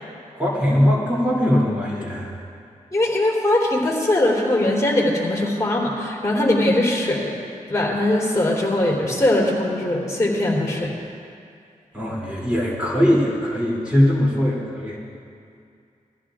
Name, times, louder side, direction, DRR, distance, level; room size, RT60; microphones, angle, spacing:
voice 1, 0.3-2.3 11.9-15.0, equal, 10° right, -7 dB, 2.9 m, -20 dB
voice 2, 2.9-7.3 7.7-10.9, left 1 dB, 25° left, -2 dB, 3.6 m, -21 dB
21.5 x 14.5 x 2.5 m, 2.4 s
cardioid pair, 70°, 14 cm